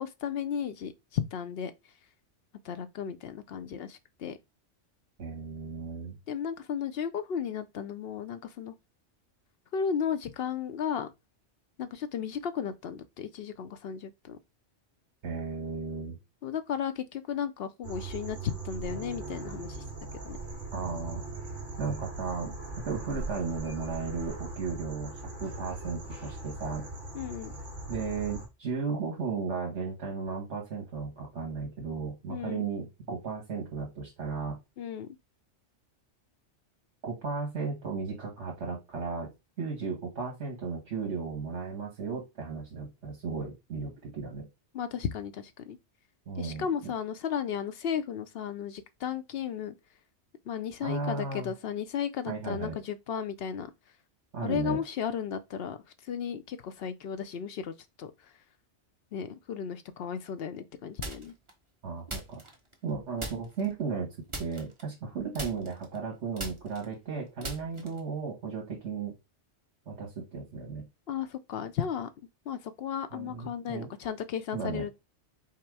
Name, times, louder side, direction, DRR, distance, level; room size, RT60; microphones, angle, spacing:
voice 1, 0.0-1.7 2.6-4.4 6.3-8.7 9.7-11.1 11.8-14.4 16.4-19.8 20.3-20.4 27.1-27.5 32.3-32.7 34.8-35.1 44.7-45.8 46.4-49.7 50.5-53.7 54.4-55.8 56.0-58.3 59.1-61.3 71.1-72.1 72.5-74.9, left 8 dB, 65° left, 0.7 m, -34 dB
voice 2, 5.2-6.2 15.2-16.2 20.7-21.2 21.8-22.5 22.8-26.9 27.9-34.6 37.0-39.3 39.6-44.5 46.2-46.7 50.8-51.5 52.3-52.8 54.3-54.8 61.8-62.4 62.8-64.1 64.4-69.1 69.9-70.9 73.1-73.9 74.5-74.8, right 5 dB, 70° right, 1.6 m, -35 dB
sound 1, 17.8-28.5, right 3 dB, 45° right, 1.9 m, -40 dB
sound 2, 61.0-61.5 62.1-62.9 63.2-63.7 64.3-65.1 65.3-68.1, right 2 dB, 25° right, 1.2 m, -40 dB
5.7 x 2.0 x 4.6 m
omnidirectional pair, 1.2 m